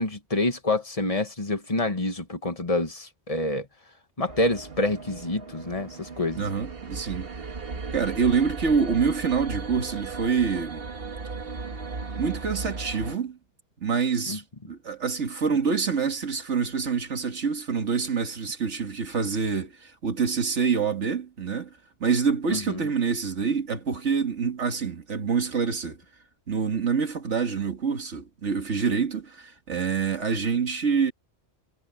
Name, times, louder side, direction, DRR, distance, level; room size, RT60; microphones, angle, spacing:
voice 1, 0.0-3.7 4.2-6.4 14.3-14.4 22.5-22.8, left 2 dB, 30° left, 1.8 m, -27 dB
sound 1, 4.3-13.2, right 4 dB, 55° right, 1.7 m, -36 dB
voice 2, 6.4-7.3 7.9-10.8 12.2-13.4 13.8-21.7 22.0-26.0 26.5-31.1, right 5 dB, 90° right, 2.2 m, -26 dB
omnidirectional pair, 1.2 m